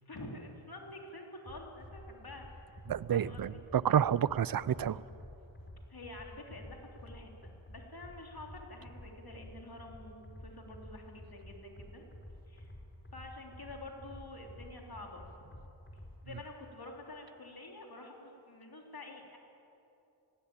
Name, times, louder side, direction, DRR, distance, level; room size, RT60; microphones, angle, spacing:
voice 1, 0.0-2.8 3.1-3.6 5.9-12.1 12.5-12.7 13.1-15.5 16.2-19.4, left 2 dB, 45° left, 1 dB, 3.5 m, -48 dB
sound 1, 1.4-16.5, left 1 dB, 25° left, 4.3 m, -51 dB
voice 2, 2.9-5.0, right 9 dB, 45° right, 20 dB, 0.6 m, -29 dB
19.5 x 16.0 x 8.9 m, 2.8 s
cardioid pair, 50°, 49 cm